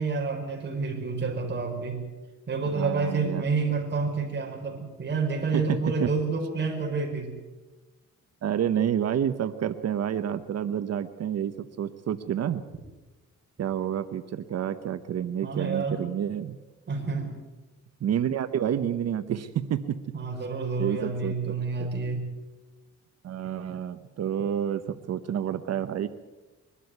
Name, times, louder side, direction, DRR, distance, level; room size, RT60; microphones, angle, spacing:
voice 1, 0.0-2.0 2.5-7.3 15.4-16.0 16.9-17.3 20.1-22.3, right 4 dB, 35° right, 2 dB, 5.1 m, -29 dB
voice 2, 2.7-3.4 5.5-6.1 8.4-12.6 13.6-16.6 18.0-20.0 20.8-21.9 23.2-26.1, right 9 dB, 60° right, 11 dB, 0.9 m, -29 dB
22.5 x 12.5 x 9.6 m, 1.2 s
cardioid pair, 125°, 29 cm